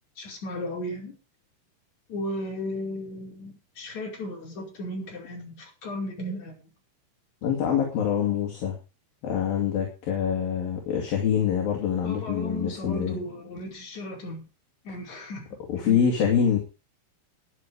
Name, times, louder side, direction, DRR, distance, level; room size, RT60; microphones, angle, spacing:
voice 1, 0.2-1.1 2.1-6.6 12.0-14.4 14.8-15.5 15.8-16.0, left 1 dB, 40° left, 0 dB, 6.2 m, -35 dB
voice 2, 7.4-8.8 9.2-13.2 15.7-16.6, left 8 dB, 55° left, 1 dB, 4.2 m, -25 dB
14.0 x 10.5 x 4.9 m, 0.32 s
omnidirectional pair, 5.2 m